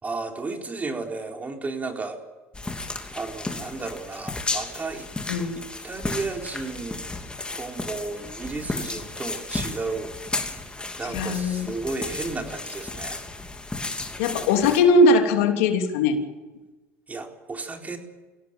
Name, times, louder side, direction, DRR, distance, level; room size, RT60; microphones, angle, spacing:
voice 1, 0.0-2.2 3.1-5.1 5.5-7.0 7.6-10.1 11.0-13.2 17.1-18.0, right 3 dB, 20° right, 3 dB, 4.4 m, -33 dB
sound 1, 2.5-14.8, left 2 dB, 15° left, 3.1 m, -34 dB
voice 2, 11.1-11.7 14.2-16.2, left 2 dB, 80° left, 5 dB, 3.2 m, -20 dB
24.5 x 17.0 x 9.2 m, 1.2 s
supercardioid pair, 95°, 7 cm